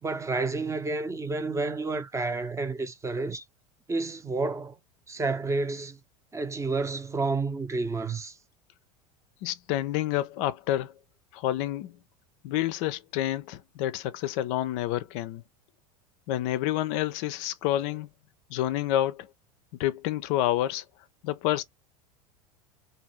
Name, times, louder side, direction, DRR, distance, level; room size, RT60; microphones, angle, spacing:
voice 1, 0.0-3.4 3.9-4.8 5.1-6.0 6.3-8.4, right 3 dB, 15° right, 0.6 m, -30 dB
voice 2, 9.4-10.9 11.3-11.9 12.4-15.4 16.3-18.1 18.5-19.3 19.8-20.8 21.2-21.6, left 13 dB, 55° left, 0.4 m, -28 dB
2.7 x 2.6 x 3.0 m
hypercardioid pair, 85°, 20 cm